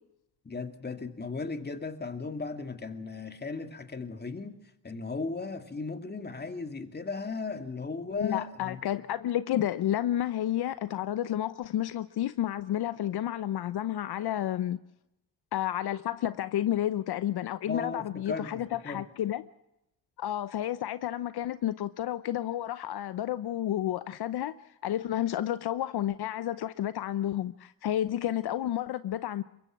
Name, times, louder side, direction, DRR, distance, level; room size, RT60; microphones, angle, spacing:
voice 1, 0.4-4.6 4.8-8.8 17.7-19.0, left 4 dB, 25° left, 7 dB, 2.4 m, -36 dB
voice 2, 8.1-14.8 15.5-19.4 20.2-24.5 24.8-29.4, left 12 dB, 65° left, 14 dB, 0.8 m, -31 dB
23.5 x 22.0 x 6.0 m, 0.86 s
cardioid pair, 80°, 41 cm